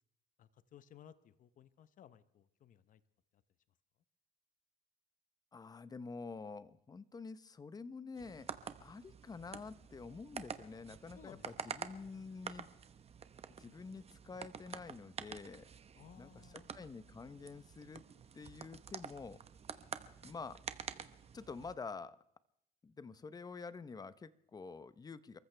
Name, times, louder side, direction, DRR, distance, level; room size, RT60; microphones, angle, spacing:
voice 1, 0.4-3.0 3.3-3.4 11.1-11.8 15.9-16.7, left 9 dB, 50° left, 14 dB, 0.8 m, -59 dB
voice 2, 5.5-8.5 8.8-12.7 13.6-15.7 16.2-18.0 18.3-19.4 20.2-20.6 21.3-22.2 22.8-25.4, left 4 dB, 20° left, 15 dB, 0.8 m, -48 dB
sound 1, 8.2-21.7, right 7 dB, 35° right, 1.0 m, -49 dB
29.5 x 14.5 x 3.3 m, 0.76 s
cardioid pair, 110°, 17 cm